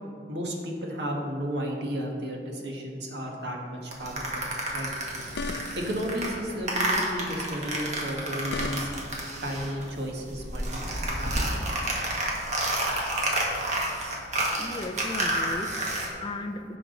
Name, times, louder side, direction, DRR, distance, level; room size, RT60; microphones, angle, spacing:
voice 1, 0.3-4.9 5.8-8.9 9.4-11.3, equal, 70° right, 0 dB, 1.7 m, -33 dB
sound 1, 3.9-9.9 10.2-16.1, right 1 dB, 40° right, 1.7 m, -30 dB
sound 2, 5.1-6.1 8.1-9.2, left 3 dB, 75° left, 0.5 m, -36 dB
voice 2, 14.6-16.8, left 2 dB, 25° left, 6 dB, 0.5 m, -36 dB
16.0 x 6.1 x 3.9 m, 2.4 s
head